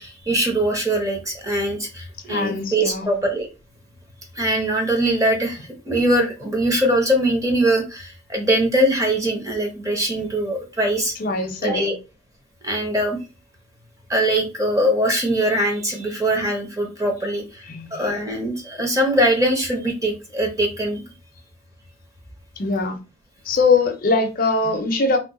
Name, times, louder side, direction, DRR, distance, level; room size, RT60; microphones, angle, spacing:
voice 1, 0.0-3.5 4.3-11.1 11.6-12.0 12.6-13.2 14.1-17.6 17.9-21.0, right 1 dB, 15° right, 0.7 m, -22 dB
voice 2, 2.3-3.2 11.2-12.0 17.7-18.0 22.6-23.0 23.5-25.2, left 3 dB, 45° left, 0.5 m, -22 dB
2.9 x 2.1 x 3.6 m
head